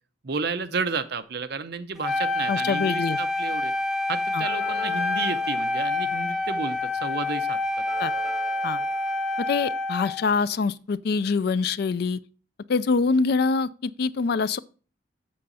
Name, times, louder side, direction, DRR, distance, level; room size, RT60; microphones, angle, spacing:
voice 1, 0.2-3.7 4.1-7.6, right 4 dB, 55° right, 0.7 m, -31 dB
Wind instrument woodwind instrument, 2.0-10.3, left 2 dB, 5° right, 0.7 m, -27 dB
voice 2, 2.5-3.2 4.3-4.4 8.0-8.1 8.6-8.8 9.4-12.2 12.7-14.6, left 4 dB, 55° left, 0.4 m, -24 dB
sound 1, 4.4-10.2, equal, 35° right, 4.5 m, -44 dB
7.6 x 6.7 x 4.1 m
head